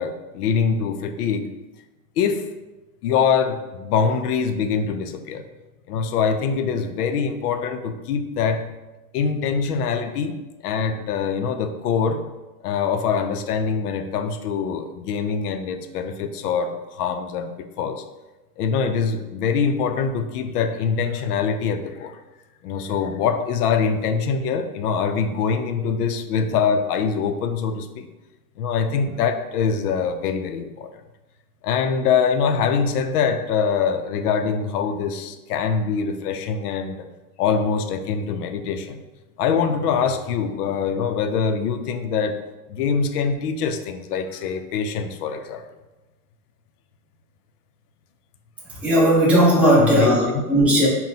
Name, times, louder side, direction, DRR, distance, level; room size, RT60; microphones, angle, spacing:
voice 1, 0.0-1.5 2.2-2.5 3.0-5.5 5.9-8.6 9.1-10.4 10.6-12.2 12.6-18.0 18.6-22.2 22.6-28.1 28.6-30.9 31.6-37.1 37.4-39.0 39.4-42.4 42.7-45.6 49.8-50.2, left 6 dB, 75° left, 8 dB, 0.6 m, -24 dB
voice 2, 48.8-50.9, equal, 5° right, -8 dB, 0.5 m, -16 dB
4.1 x 2.2 x 4.1 m, 1.1 s
supercardioid pair, 155°, 46 cm